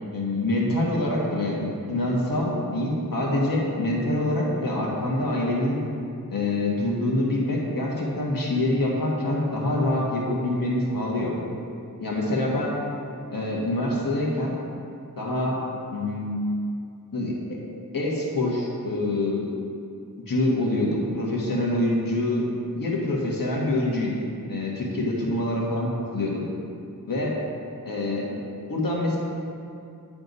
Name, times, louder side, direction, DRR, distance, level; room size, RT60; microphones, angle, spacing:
voice 1, 0.1-5.8 6.3-11.3 12.0-12.7 13.3-14.5 15.2-15.6 15.9-16.4 17.1-17.6 17.9-19.4 20.3-24.1 24.5-26.4 27.1-27.4 27.8-28.3 28.7-29.2, left 1 dB, 75° left, -3 dB, 1.4 m, -25 dB
9.4 x 3.5 x 5.3 m, 2.5 s
wide cardioid pair, 75°, 35 cm